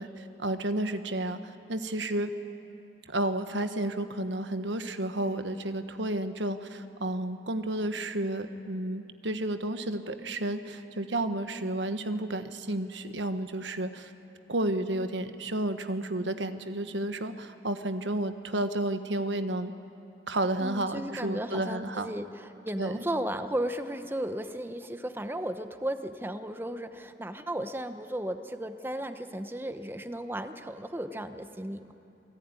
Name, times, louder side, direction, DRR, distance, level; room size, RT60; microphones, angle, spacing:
voice 1, 0.0-2.3 3.1-14.1 14.5-19.7 20.3-22.1 22.8-23.0, right 1 dB, 90° right, 9 dB, 1.3 m, -31 dB
voice 2, 20.6-31.9, right 1 dB, 10° right, 8 dB, 0.9 m, -35 dB
28.5 x 19.0 x 9.7 m, 2.9 s
head